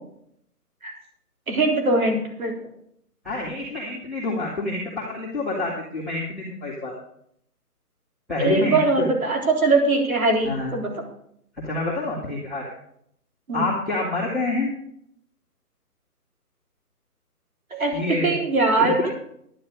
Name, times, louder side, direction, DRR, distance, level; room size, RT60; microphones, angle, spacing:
voice 1, 1.5-2.5 8.4-10.9 13.5-13.7 17.7-19.0, right 3 dB, 60° right, 1 dB, 3.9 m, -21 dB
voice 2, 3.2-6.9 8.3-9.1 10.4-10.7 11.6-12.6 13.5-14.7 17.9-18.3 18.8-19.1, left 2 dB, ahead, -16 dB, 0.9 m, -27 dB
11.5 x 10.5 x 5.3 m, 0.70 s
hypercardioid pair, 180°, 47 cm